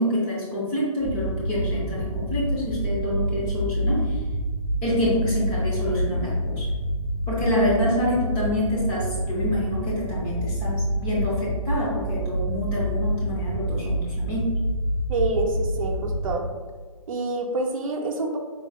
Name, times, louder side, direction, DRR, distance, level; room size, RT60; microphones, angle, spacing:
voice 1, 0.0-4.2 4.8-6.7 7.3-14.5, left 1 dB, 15° left, -5 dB, 0.7 m, -27 dB
sound 1, 1.0-16.3, equal, 5° right, 1.0 m, -27 dB
voice 2, 15.1-16.4 17.1-18.4, right 3 dB, 65° right, 1 dB, 0.6 m, -27 dB
3.9 x 3.1 x 2.2 m, 1.4 s
hypercardioid pair, 155°, 19 cm